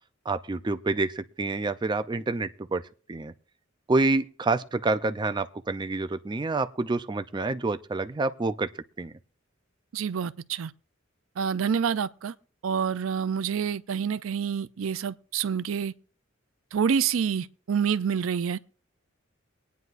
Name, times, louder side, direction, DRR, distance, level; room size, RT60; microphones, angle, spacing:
voice 1, 0.3-2.8 3.1-3.3 3.9-8.7 9.0-9.1, right 3 dB, 20° right, 0.4 m, -27 dB
voice 2, 9.9-10.7 11.4-12.3 12.6-15.9 16.7-18.6, right 7 dB, 85° right, 0.4 m, -27 dB
24.0 x 9.4 x 2.5 m
head